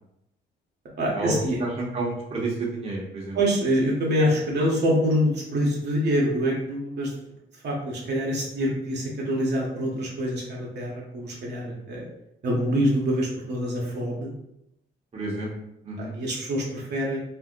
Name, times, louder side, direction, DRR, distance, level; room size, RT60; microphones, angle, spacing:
voice 1, 1.0-1.6 3.3-7.1 7.6-12.0 12.4-14.3 16.0-17.2, equal, 60° right, -3 dB, 0.9 m, -25 dB
voice 2, 1.8-3.4 15.1-15.5 15.8-16.1, right 2 dB, 30° right, -3 dB, 0.8 m, -30 dB
2.6 x 2.0 x 3.8 m, 0.81 s
cardioid pair, 90°, 20 cm